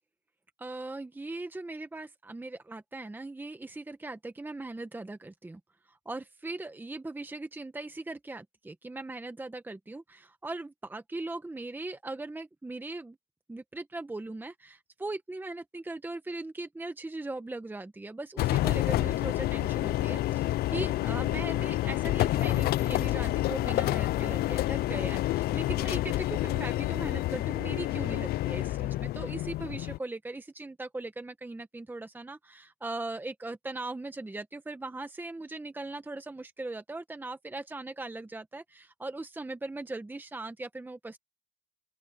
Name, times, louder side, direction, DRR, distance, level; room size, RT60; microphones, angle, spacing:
voice 1, 0.6-5.6 5.9-13.2 13.5-41.2, right 2 dB, 10° right, 1.4 m, -39 dB
sound 1, 18.4-30.0, left 16 dB, 65° left, 0.5 m, -28 dB
open air
cardioid pair, 110°, 17 cm